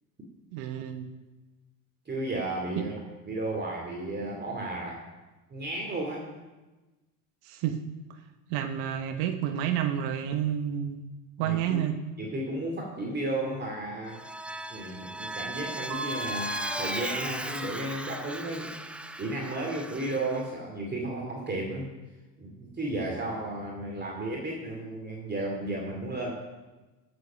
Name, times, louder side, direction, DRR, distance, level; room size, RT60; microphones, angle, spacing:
voice 1, 0.5-1.1 2.8-2.9 7.4-7.8 8.5-11.0 11.4-12.0, right 10 dB, 55° right, 8 dB, 1.2 m, -29 dB
voice 2, 2.1-3.0 3.3-5.0 5.5-6.3 11.4-11.8 12.2-14.2 14.7-21.9 22.4-26.3, right 2 dB, 20° right, -1 dB, 2.6 m, -33 dB
Vehicle, 14.1-20.4, right 1 dB, 5° right, 0.3 m, -37 dB
Mallet percussion, 15.9-18.5, left 1 dB, 40° right, 3.2 m, -40 dB
14.0 x 7.6 x 5.7 m, 1.2 s
hypercardioid pair, 90°, 48 cm